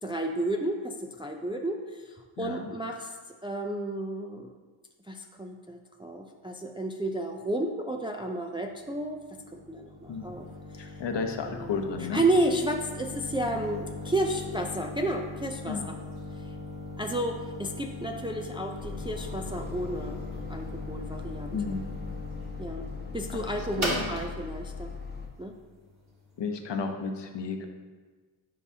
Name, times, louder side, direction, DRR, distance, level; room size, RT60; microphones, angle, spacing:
voice 1, 0.0-3.1 3.4-4.5 5.1-10.5 10.7-10.9 11.5-11.8 12.1-16.0 17.0-21.6 22.6-22.9 23.1-24.9 25.4-25.5, right 1 dB, 10° right, 2 dB, 0.3 m, -32 dB
voice 2, 2.4-2.7 10.1-10.3 10.8-12.2 15.7-15.9 21.5-21.8 23.3-23.4 23.8-24.1 26.4-27.7, left 5 dB, 55° left, 5 dB, 0.9 m, -33 dB
sound 1, 8.7-26.3, left 1 dB, 30° right, 2.0 m, -40 dB
sound 2, 18.8-25.3, left 4 dB, 20° left, 0.9 m, -39 dB
9.5 x 4.9 x 2.7 m, 1.4 s
cardioid pair, 95°, 49 cm